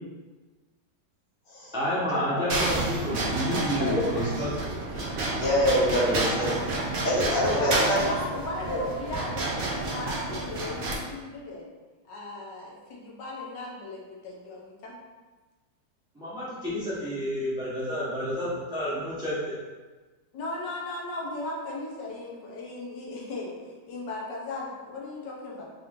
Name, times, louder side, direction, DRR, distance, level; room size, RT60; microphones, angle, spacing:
voice 1, 1.7-4.8 6.0-6.2 16.1-19.6, equal, 5° right, -9 dB, 0.8 m, -30 dB
sound 1, 2.5-11.0, right 2 dB, 65° right, 0.5 m, -30 dB
voice 2, 5.4-6.6 7.0-8.0 8.7-8.8, equal, 55° left, -6 dB, 1.4 m, -25 dB
voice 3, 7.4-11.6 12.1-15.0 20.3-25.6, left 2 dB, 85° left, -3 dB, 1.5 m, -36 dB
4.2 x 2.6 x 3.6 m, 1.3 s
omnidirectional pair, 1.9 m